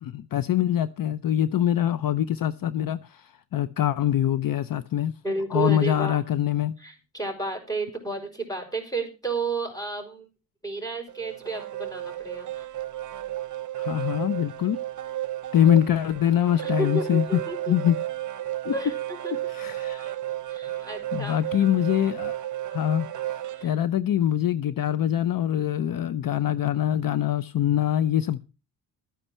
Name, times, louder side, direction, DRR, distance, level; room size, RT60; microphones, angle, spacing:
voice 1, 0.0-5.1 5.5-6.7 13.8-14.8 15.5-17.4 17.7-18.0 18.6-18.7 19.5-20.2 20.7-22.3 22.7-28.4, left 11 dB, 55° left, 0.7 m, -24 dB
voice 2, 5.2-6.2 6.8-10.3 10.6-12.7 16.6-17.7 18.7-19.3 20.5-21.4 23.6-23.7, right 3 dB, 10° left, 5.4 m, -32 dB
sound 1, 11.1-23.7, right 13 dB, 50° right, 0.8 m, -33 dB
13.0 x 10.0 x 4.4 m
cardioid pair, 105°, 40 cm